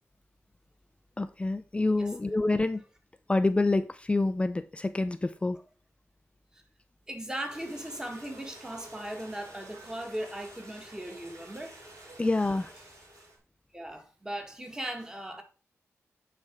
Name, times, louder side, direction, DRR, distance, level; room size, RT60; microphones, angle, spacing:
voice 1, 1.2-2.8 3.3-5.6 12.2-12.7, left 2 dB, 20° left, 0.5 m, -27 dB
voice 2, 7.1-11.8 13.7-15.4, right 1 dB, 10° right, 1.6 m, -38 dB
sound 1, 7.5-13.4, right 1 dB, 70° right, 3.0 m, -50 dB
9.1 x 4.4 x 3.6 m
wide cardioid pair, 90°, 6 cm